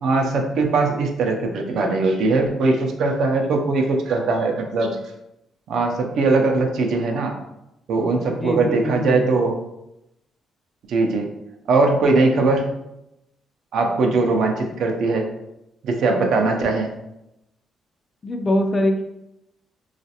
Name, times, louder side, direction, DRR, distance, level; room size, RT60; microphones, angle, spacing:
voice 1, 0.0-5.0 5.7-7.4 7.9-9.6 10.9-11.3 11.7-12.7 13.7-15.3 15.8-16.9, right 3 dB, 75° right, 2 dB, 0.5 m, -20 dB
voice 2, 8.2-9.3 18.2-19.0, left 1 dB, 30° left, 5 dB, 0.4 m, -23 dB
3.1 x 2.4 x 2.8 m, 0.87 s
cardioid pair, 90°, 0 cm